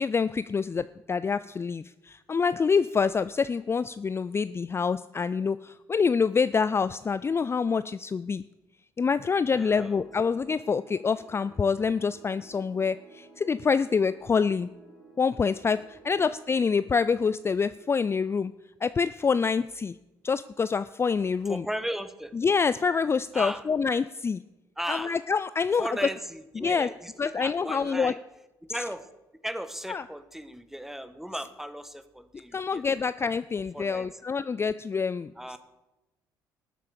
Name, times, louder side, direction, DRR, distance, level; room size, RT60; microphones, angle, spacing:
voice 1, 0.0-8.4 9.0-14.7 15.2-18.5 18.8-20.0 20.2-21.6 22.4-24.4 24.9-25.9 26.6-26.9 27.2-28.1 29.9-30.0 32.5-35.3, left 5 dB, 30° left, 15 dB, 0.4 m, -26 dB
sound 1, 9.3-18.6, right 3 dB, 90° right, 3.6 m, -55 dB
voice 2, 9.5-10.1 16.1-16.3 21.5-22.3 23.3-23.7 24.8-25.2 25.7-28.2 28.7-29.0 29.4-33.1 33.7-34.1 35.4-35.6, equal, 5° right, 12 dB, 1.3 m, -36 dB
13.5 x 8.2 x 6.8 m, 1.0 s
supercardioid pair, 60°, 9 cm